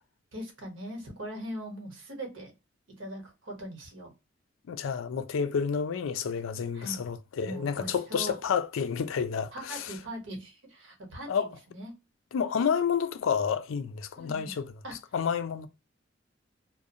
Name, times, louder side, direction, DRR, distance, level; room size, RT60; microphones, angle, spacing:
voice 1, 0.3-2.5 3.0-4.1 6.7-7.0 7.4-8.4 9.5-11.9 14.2-14.6 14.8-15.0, right 1 dB, 70° right, 1.0 m, -40 dB
voice 2, 4.7-10.0 11.3-11.5 12.3-14.7 15.1-15.7, left 6 dB, 85° left, 0.4 m, -30 dB
2.4 x 2.1 x 2.6 m
head